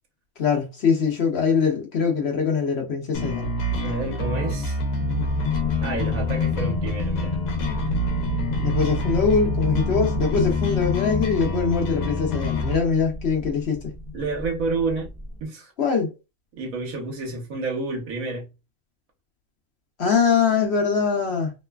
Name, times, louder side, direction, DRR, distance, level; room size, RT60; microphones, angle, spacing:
voice 1, 0.4-3.5 8.6-13.9 15.8-16.1 20.0-21.5, left 5 dB, 60° left, 0.8 m, -22 dB
sound 1, 3.1-12.7, left 2 dB, 80° left, 1.1 m, -26 dB
voice 2, 3.8-4.8 5.8-7.4 14.1-15.1 15.4-15.7 16.5-18.5, right 3 dB, 75° right, 1.4 m, -29 dB
sound 2, 5.0-15.4, left 2 dB, 5° left, 0.6 m, -32 dB
3.1 x 2.1 x 2.2 m
omnidirectional pair, 1.4 m